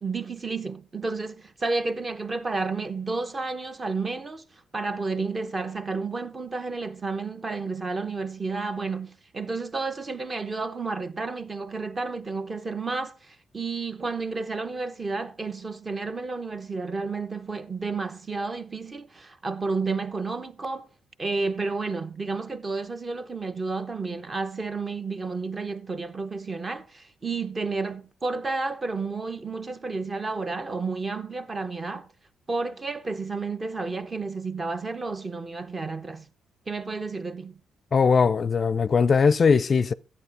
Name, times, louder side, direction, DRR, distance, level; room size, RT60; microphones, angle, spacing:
voice 1, 0.0-20.9 21.2-32.1 32.5-36.3 36.7-37.6, right 3 dB, 30° right, 0.9 m, -31 dB
voice 2, 37.9-39.9, left 5 dB, 40° left, 0.5 m, -20 dB
12.5 x 8.8 x 4.8 m
cardioid pair, 90°, 0 cm